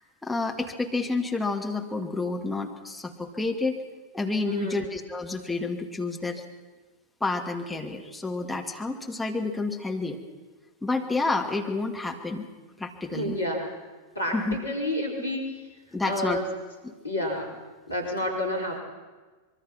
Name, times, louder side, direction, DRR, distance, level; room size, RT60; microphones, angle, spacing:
voice 1, 0.0-3.8 4.1-6.4 7.2-10.2 10.8-12.5 12.8-13.3 14.3-14.6 15.9-16.4 16.8-16.9, left 3 dB, 5° left, 2 dB, 2.3 m, -29 dB
voice 2, 4.5-4.9 13.1-13.7 14.2-15.4 16.0-16.4 17.0-17.5 17.9-18.8, left 1 dB, 80° left, 0 dB, 5.0 m, -29 dB
25.0 x 23.0 x 5.9 m, 1.3 s
figure-of-eight pair, 90°, 0 cm